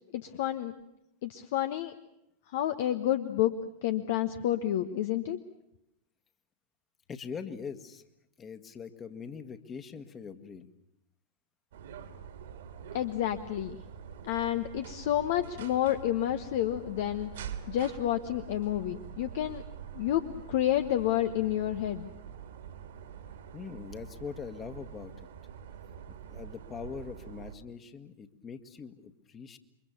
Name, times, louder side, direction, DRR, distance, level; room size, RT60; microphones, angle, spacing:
voice 1, 0.1-0.7 1.2-1.9 2.5-3.5 3.8-5.4 12.9-13.8 14.2-17.3 17.7-19.6 19.9-20.2 20.5-22.1, left 12 dB, 55° left, 10 dB, 1.2 m, -29 dB
voice 2, 7.1-8.0 8.4-10.7 23.5-25.3 26.1-29.6, left 6 dB, 25° left, 9 dB, 1.8 m, -42 dB
sound 1, 11.7-27.6, right 8 dB, 60° right, 2.2 m, -45 dB
28.5 x 24.0 x 7.0 m, 0.84 s
figure-of-eight pair, 90°, 0 cm